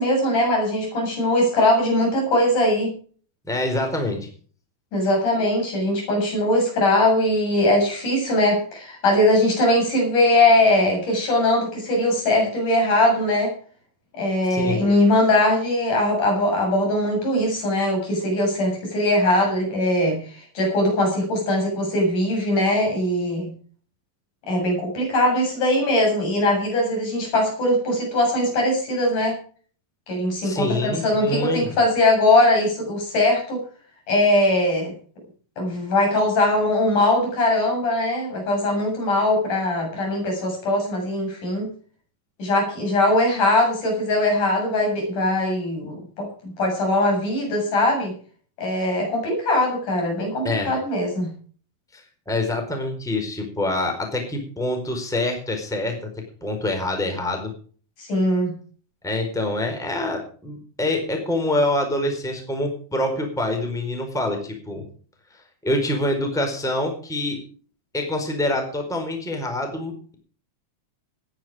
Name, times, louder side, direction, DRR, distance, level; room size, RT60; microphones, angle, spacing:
voice 1, 0.0-2.9 4.9-13.5 14.2-23.5 24.5-29.4 30.1-33.6 34.1-34.9 35.6-41.7 42.4-46.3 46.6-48.1 48.6-51.3 58.0-58.5, left 1 dB, 65° left, 0 dB, 9.0 m, -21 dB
voice 2, 3.5-4.3 14.5-14.8 30.4-31.7 50.4-50.7 51.9-55.9 56.4-57.5 59.0-64.8 65.6-67.4 67.9-70.1, left 1 dB, ahead, 3 dB, 4.0 m, -25 dB
18.5 x 10.5 x 5.0 m, 0.43 s
omnidirectional pair, 3.8 m